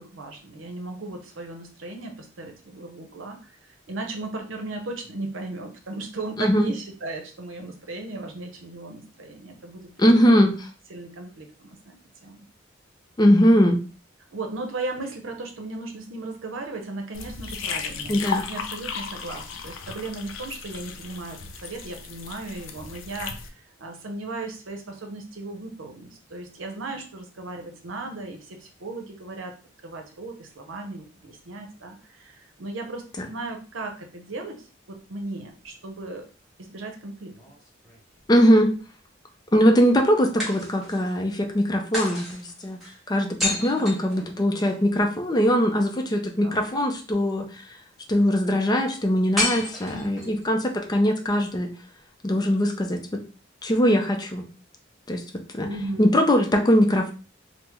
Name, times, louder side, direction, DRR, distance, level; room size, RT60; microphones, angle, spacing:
voice 1, 0.0-3.5 3.9-10.4 10.9-12.4 14.3-29.5 29.8-36.3 36.6-37.3 43.7-44.0 46.4-46.7 49.9-50.4 55.6-56.0, right 2 dB, 85° right, 4 dB, 0.7 m, -36 dB
voice 2, 6.4-6.7 10.0-10.5 13.2-13.8 18.1-18.4 38.3-38.7 39.5-42.8 43.1-47.5 48.1-51.7 52.2-53.2 53.6-54.5 55.1-55.2 55.5-55.7 56.0-57.1, equal, 20° left, 3 dB, 0.4 m, -21 dB
sound 1, 17.1-23.5, left 6 dB, 85° left, 0.5 m, -35 dB
sound 2, 37.3-38.4 40.4-41.2 41.9-44.8 49.4-50.4, left 2 dB, ahead, 1.1 m, -31 dB
3.5 x 2.1 x 3.0 m, 0.36 s
head